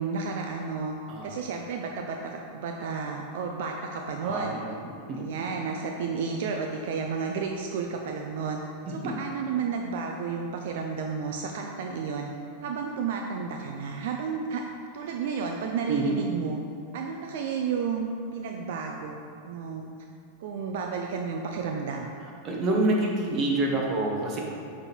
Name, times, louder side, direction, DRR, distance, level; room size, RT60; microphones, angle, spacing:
voice 1, 0.0-0.9 1.2-4.6 5.2-12.3 12.6-14.6 14.9-16.6 16.9-19.9 20.4-22.1, right 5 dB, 70° right, 2 dB, 0.4 m, -32 dB
voice 2, 4.2-4.8 5.1-5.2 8.9-9.1 15.9-16.2 22.4-24.4, right 2 dB, 35° right, -1 dB, 1.2 m, -27 dB
6.8 x 3.6 x 4.3 m, 2.4 s
supercardioid pair, 130°, 0 cm